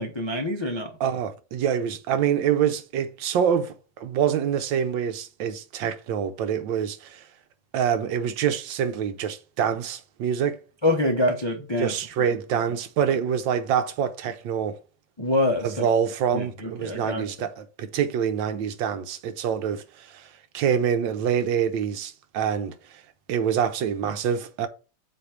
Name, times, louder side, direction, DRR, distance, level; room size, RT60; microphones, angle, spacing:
voice 1, 0.0-0.9 10.8-12.3 15.2-15.9 16.3-17.2, left 1 dB, 35° left, 0.4 m, -26 dB
voice 2, 1.0-7.3 7.7-10.6 11.8-14.8 15.6-23.0 23.3-24.7, right 8 dB, 75° right, 1.4 m, -26 dB
7.8 x 3.2 x 5.8 m
omnidirectional pair, 2.2 m